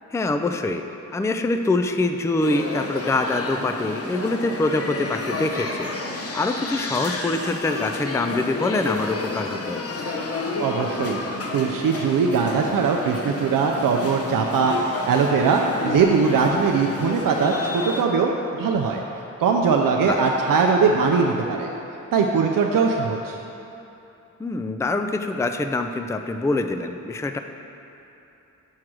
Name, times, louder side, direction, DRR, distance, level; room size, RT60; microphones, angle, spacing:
voice 1, 0.1-0.8 1.1-9.8 20.0-20.2 24.4-27.4, left 2 dB, 10° left, 7 dB, 0.4 m, -25 dB
sound 1, 2.4-18.0, left 2 dB, 45° left, 0.9 m, -31 dB
voice 2, 10.6-11.2 11.5-19.0 19.4-21.7 22.1-23.4, right 5 dB, 80° right, 1 dB, 0.5 m, -21 dB
6.4 x 4.7 x 6.0 m, 2.9 s
cardioid pair, 50°, 33 cm